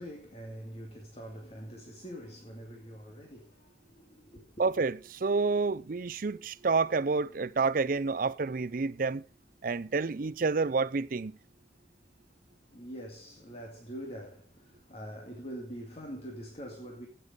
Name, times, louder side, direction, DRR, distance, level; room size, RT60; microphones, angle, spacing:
voice 1, 0.0-4.6 12.7-17.1, equal, 35° left, 2.2 m, -44 dB
voice 2, 4.6-9.2 9.6-11.4, right 4 dB, 50° right, 0.5 m, -29 dB
16.0 x 6.8 x 5.4 m
head